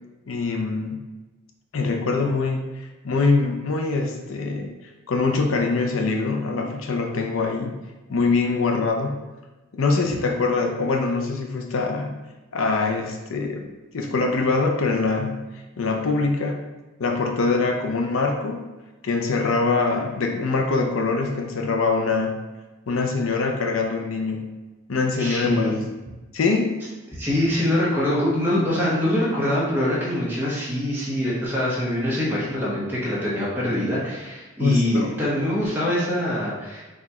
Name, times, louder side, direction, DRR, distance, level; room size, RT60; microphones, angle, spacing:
voice 1, 0.3-1.0 1.7-4.7 5.1-7.7 8.1-9.1 9.7-12.1 12.5-13.6 13.9-15.4 15.8-16.6 17.0-18.7 19.0-22.3 22.9-24.5 24.9-25.8 26.3-26.8 27.6-27.7 34.6-35.1, left 3 dB, 80° left, 3 dB, 0.5 m, -23 dB
voice 2, 25.2-25.8 27.2-36.8, left 1 dB, 10° right, -7 dB, 1.1 m, -24 dB
4.1 x 2.4 x 4.2 m, 1.1 s
head